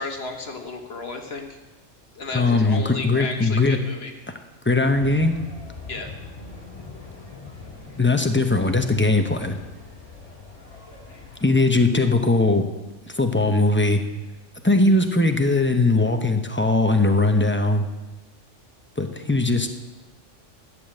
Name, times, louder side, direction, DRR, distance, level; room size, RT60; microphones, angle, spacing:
voice 1, 0.0-1.5 2.1-4.1 5.9-6.1, left 3 dB, 55° left, 4 dB, 1.5 m, -33 dB
voice 2, 2.3-3.8 4.7-5.3 8.0-9.5 11.4-12.7 13.2-14.0 14.6-17.8 19.0-19.8, left 2 dB, 10° left, 6 dB, 0.7 m, -20 dB
sound 1, 4.8-11.7, left 4 dB, 30° left, 2.4 m, -42 dB
12.0 x 7.9 x 7.8 m, 1.1 s
omnidirectional pair, 1.3 m